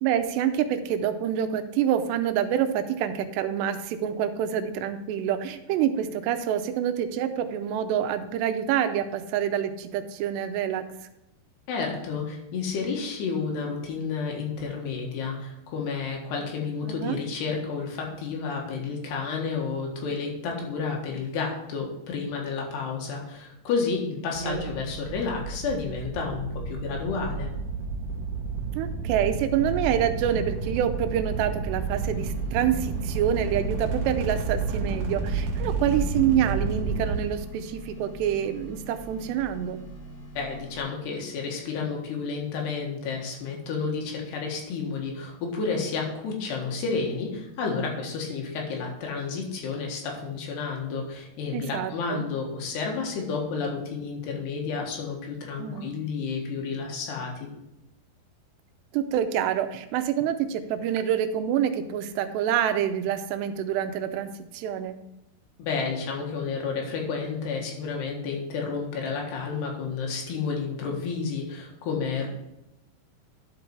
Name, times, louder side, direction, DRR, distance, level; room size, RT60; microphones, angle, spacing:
voice 1, 0.0-10.9 16.8-17.2 24.4-24.7 28.7-39.8 51.5-52.3 55.6-56.0 58.9-64.9, right 9 dB, 85° right, 8 dB, 2.9 m, -27 dB
voice 2, 11.7-27.5 40.4-57.5 65.6-72.3, left 5 dB, 80° left, 0 dB, 3.7 m, -31 dB
sound 1, 24.3-37.2, right 4 dB, 65° right, 2.3 m, -31 dB
sound 2, 32.0-40.8, left 1 dB, 50° left, 3.4 m, -44 dB
11.5 x 5.3 x 4.6 m, 0.90 s
omnidirectional pair, 4.8 m